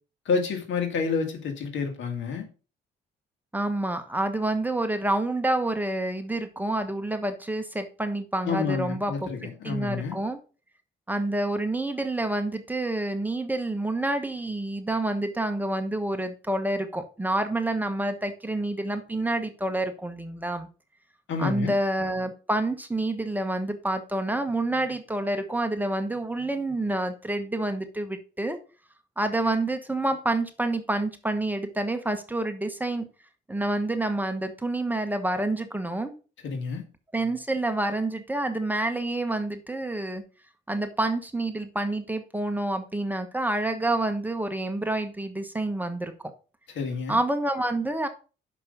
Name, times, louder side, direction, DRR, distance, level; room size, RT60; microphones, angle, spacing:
voice 1, 0.3-2.5 8.5-10.2 21.3-21.7 36.4-36.8 46.8-47.2, left 5 dB, 70° left, 1.9 m, -29 dB
voice 2, 3.5-10.4 11.1-20.7 21.4-28.6 29.2-33.1 33.5-36.1 37.1-40.2 40.7-46.1 47.1-48.1, right 2 dB, 10° right, 1.1 m, -28 dB
6.0 x 5.3 x 5.4 m
cardioid pair, 90°, 20 cm